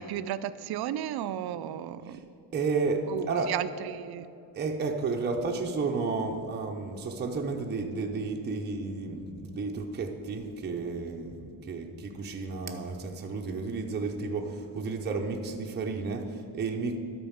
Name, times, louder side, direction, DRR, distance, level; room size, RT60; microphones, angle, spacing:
voice 1, 0.0-2.2 3.1-4.3, right 11 dB, 60° right, 13 dB, 0.5 m, -34 dB
voice 2, 2.5-3.5 4.5-17.0, right 4 dB, 25° right, 1 dB, 0.6 m, -32 dB
12.5 x 4.5 x 7.2 m, 2.7 s
cardioid pair, 165°, 43 cm